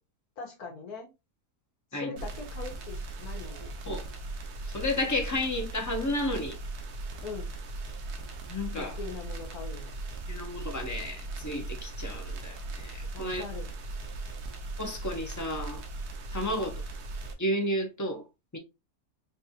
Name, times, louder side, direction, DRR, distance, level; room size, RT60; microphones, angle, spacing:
voice 1, 0.4-1.1 1.9-3.7 7.2-7.5 8.7-10.0 13.1-13.7 16.4-16.6, left 4 dB, 70° left, 1.5 m, -42 dB
sound 1, 2.2-17.3, right 2 dB, 75° right, 1.3 m, -38 dB
voice 2, 4.7-6.6 8.5-9.0 10.3-13.4 14.8-15.8 16.3-16.8 17.4-18.2 18.5-18.6, left 1 dB, 20° left, 0.5 m, -32 dB
5.1 x 2.6 x 2.7 m
omnidirectional pair, 1.7 m